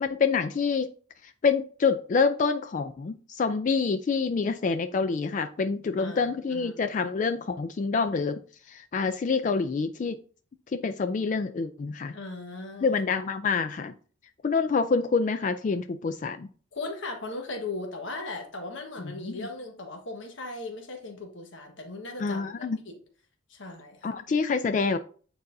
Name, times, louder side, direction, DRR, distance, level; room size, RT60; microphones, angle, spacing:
voice 1, 0.0-0.9 1.2-8.4 8.7-10.2 10.7-12.2 12.8-13.9 14.4-16.5 19.0-19.5 22.2-22.8 24.0-25.0, left 4 dB, 40° left, 9 dB, 0.3 m, -27 dB
voice 2, 6.0-6.7 12.1-12.9 16.7-22.5 22.9-23.0 23.5-24.1, left 2 dB, 70° left, 2 dB, 1.3 m, -38 dB
9.0 x 4.1 x 2.6 m, 0.42 s
head